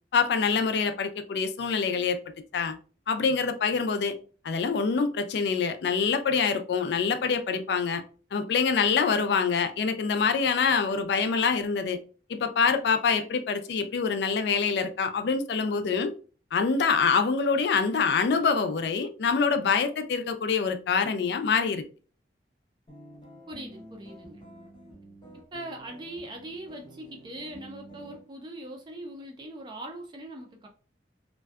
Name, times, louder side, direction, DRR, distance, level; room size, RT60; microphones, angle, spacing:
voice 1, 0.1-2.2 2.5-2.8 3.1-4.1 4.4-8.0 8.3-12.0 12.3-16.1 16.5-21.8, left 5 dB, 65° left, 8 dB, 0.3 m, -25 dB
sound 1, 22.9-28.2, right 1 dB, 25° left, 0.7 m, -49 dB
voice 2, 23.5-24.5 25.5-30.7, right 1 dB, 25° right, 3 dB, 0.3 m, -41 dB
2.5 x 2.1 x 2.2 m, 0.38 s
head